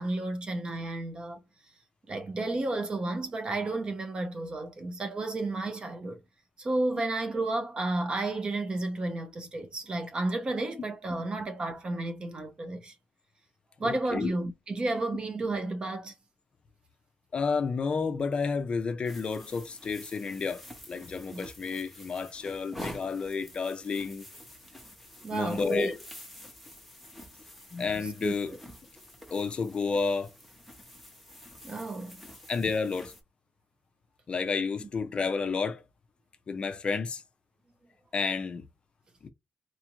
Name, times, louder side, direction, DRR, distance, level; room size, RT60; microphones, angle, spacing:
voice 1, 0.0-1.4 2.1-6.2 6.6-12.9 13.8-16.1 21.3-21.5 25.2-25.9 28.0-28.3 31.6-32.2 34.8-34.9, right 2 dB, 30° right, 0.7 m, -32 dB
voice 2, 13.8-14.3 17.3-24.2 25.3-25.9 27.7-28.5 29.3-30.3 32.5-33.1 34.3-35.8 36.5-37.2 38.1-38.7 39.2-39.3, left 5 dB, 35° left, 0.4 m, -31 dB
sound 1, 19.0-33.2, equal, ahead, 0.9 m, -48 dB
4.1 x 2.5 x 2.9 m
wide cardioid pair, 155°, 3 cm